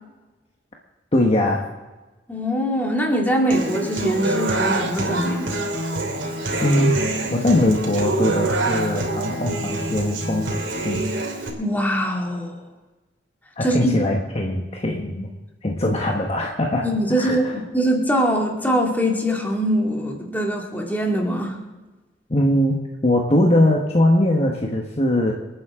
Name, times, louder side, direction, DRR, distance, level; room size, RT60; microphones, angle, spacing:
voice 1, 1.1-1.7 6.6-6.9 7.3-11.0 13.6-15.3 15.6-16.9 17.2-17.5 22.3-25.3, left 1 dB, 35° left, 0 dB, 1.4 m, -21 dB
voice 2, 2.3-5.6 11.6-12.6 13.6-13.9 16.8-21.6, equal, 10° left, 0 dB, 2.3 m, -22 dB
Human voice / Acoustic guitar, 3.5-11.5, right 2 dB, 85° right, 2.9 m, -25 dB
28.0 x 9.4 x 3.8 m, 1.2 s
head